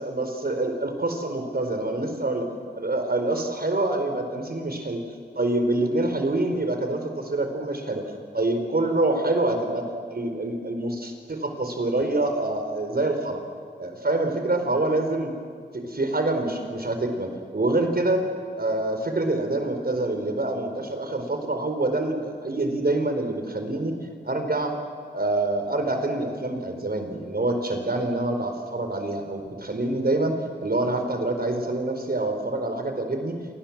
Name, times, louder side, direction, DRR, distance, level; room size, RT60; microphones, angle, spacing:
voice 1, 0.0-5.1 5.3-8.0 8.3-13.4 13.8-15.3 15.7-18.2 18.6-23.9 24.2-24.7 25.1-30.3 30.6-33.3, right 2 dB, 60° right, 5 dB, 4.7 m, -26 dB
28.5 x 25.5 x 7.5 m, 2.1 s
cardioid pair, 40°, 18 cm